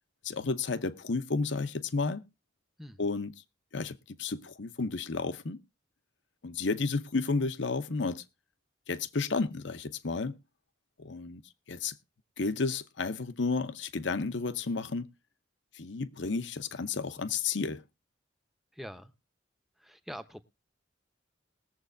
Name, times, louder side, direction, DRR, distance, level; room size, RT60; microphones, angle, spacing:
voice 1, 0.2-2.2 3.0-3.3 3.7-5.6 6.4-8.2 8.9-10.3 11.0-11.4 11.7-11.9 12.4-15.1 15.7-17.8, left 4 dB, 70° left, 0.8 m, -32 dB
voice 2, 18.7-19.1 19.8-20.4, equal, ahead, 0.8 m, -44 dB
21.0 x 7.5 x 2.5 m
head